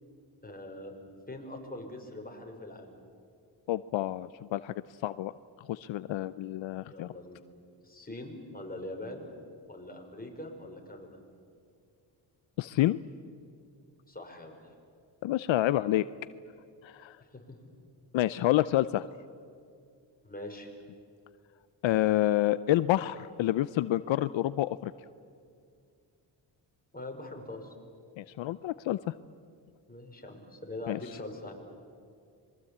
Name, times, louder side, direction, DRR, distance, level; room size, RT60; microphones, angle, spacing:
voice 1, 0.4-0.9 1.3-3.0 6.9-7.4 7.8-9.3 9.7-11.2 14.1-14.7 17.2-17.6 20.2-20.7 26.9-27.7 29.9-31.5, left 1 dB, 20° left, 2 dB, 5.5 m, -43 dB
voice 2, 3.7-4.7 5.0-5.3 5.7-7.1 12.6-13.0 15.2-16.1 16.8-17.2 18.1-19.0 21.8-24.9 28.2-29.1 30.9-31.0, left 14 dB, 75° left, 15 dB, 0.7 m, -28 dB
26.0 x 22.5 x 8.6 m, 2.3 s
cardioid pair, 70°, 46 cm